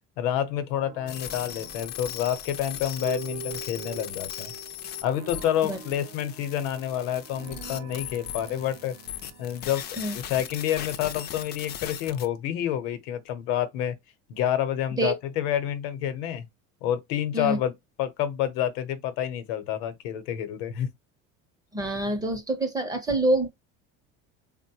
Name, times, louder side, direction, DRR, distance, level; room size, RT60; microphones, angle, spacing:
voice 1, 0.2-4.5 5.0-8.9 9.4-13.9 14.3-16.4 16.8-17.7 18.0-20.9, left 10 dB, 90° left, 0.8 m, -28 dB
sound 1, 0.7-10.8, right 10 dB, 60° right, 0.8 m, -45 dB
sound 2, 1.1-12.3, left 11 dB, 35° left, 0.4 m, -39 dB
voice 2, 21.7-23.5, right 2 dB, 10° right, 0.6 m, -26 dB
3.7 x 2.1 x 2.8 m
cardioid pair, 155°, 30 cm